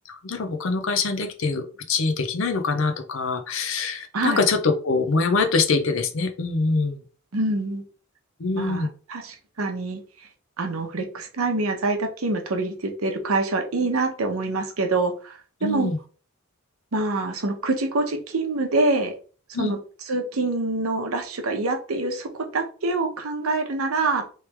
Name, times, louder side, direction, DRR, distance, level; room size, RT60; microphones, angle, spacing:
voice 1, 0.1-7.0 8.4-8.9 15.6-16.0 19.5-19.7, left 4 dB, 65° left, 6 dB, 0.6 m, -24 dB
voice 2, 7.3-7.8 8.5-10.0 10.6-15.9 16.9-19.1 19.6-19.8 20.1-24.2, right 2 dB, 90° right, 5 dB, 0.8 m, -25 dB
3.2 x 3.1 x 3.3 m, 0.38 s
head